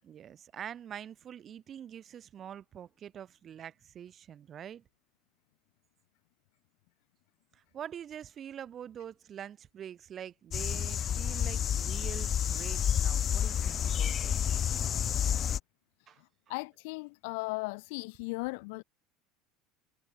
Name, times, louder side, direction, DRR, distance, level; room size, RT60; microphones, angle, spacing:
voice 1, 0.0-4.8 7.5-14.3 16.1-16.2, right 9 dB, 40° right, 7.2 m, -45 dB
sound 1, 10.5-15.6, left 9 dB, 40° left, 0.4 m, -30 dB
voice 2, 16.5-18.8, left 28 dB, 75° left, 1.8 m, -37 dB
supercardioid pair, 90°, 0 cm